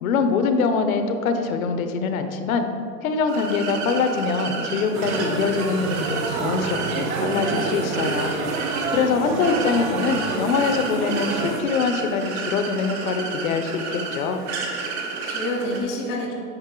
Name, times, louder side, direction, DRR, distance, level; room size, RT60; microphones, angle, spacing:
voice 1, 0.0-2.7 3.0-8.3 8.9-14.4, left 5 dB, 55° left, 7 dB, 0.8 m, -24 dB
sound 1, 3.3-15.8, right 4 dB, 40° right, 1.3 m, -31 dB
sound 2, 4.9-11.6, right 4 dB, 55° right, 0.9 m, -28 dB
voice 2, 8.9-9.4 15.0-16.3, left 1 dB, 15° left, -4 dB, 0.5 m, -29 dB
8.9 x 5.2 x 3.8 m, 2.4 s
hypercardioid pair, 145°, 49 cm